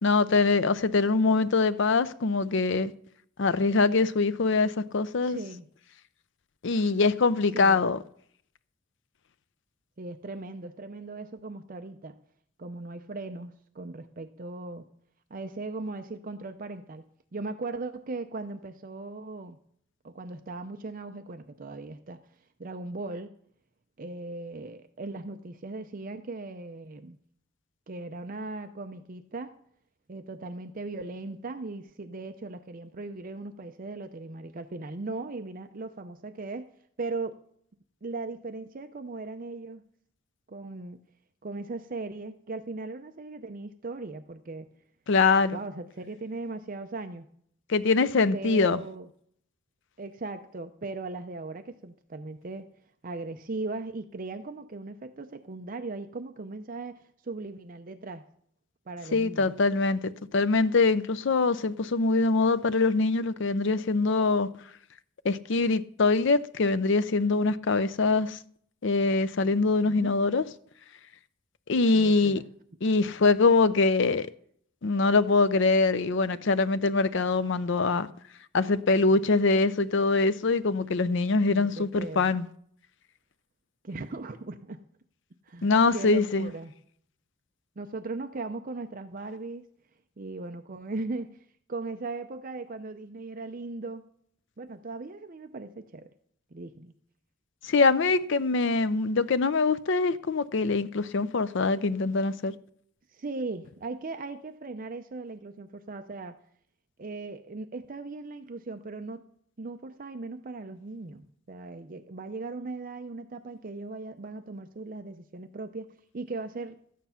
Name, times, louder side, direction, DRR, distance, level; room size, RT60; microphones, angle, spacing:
voice 1, 0.0-2.9 3.4-5.4 6.6-8.0 45.1-45.6 47.7-48.8 59.1-64.5 65.2-68.4 68.8-70.4 71.7-72.4 72.8-74.3 74.8-78.1 78.5-82.5 85.6-86.5 97.6-102.5, left 3 dB, 55° left, 0.5 m, -23 dB
voice 2, 5.2-5.7 7.5-7.8 10.0-12.2 12.6-14.9 15.3-17.0 17.3-19.6 20.0-22.2 22.6-23.3 24.0-27.2 27.9-29.5 30.1-36.7 37.0-37.4 38.0-39.8 40.5-41.0 41.4-44.7 45.5-47.2 48.3-49.1 50.0-52.7 53.0-58.3 58.9-59.5 69.8-70.1 72.0-72.4 81.5-82.3 83.8-84.8 85.4-86.7 87.8-89.6 90.2-91.4 91.7-94.1 94.6-96.1 96.5-96.9 103.1-106.4 107.0-109.3 109.6-116.8, right 3 dB, 40° right, 0.5 m, -38 dB
13.0 x 9.3 x 5.7 m
head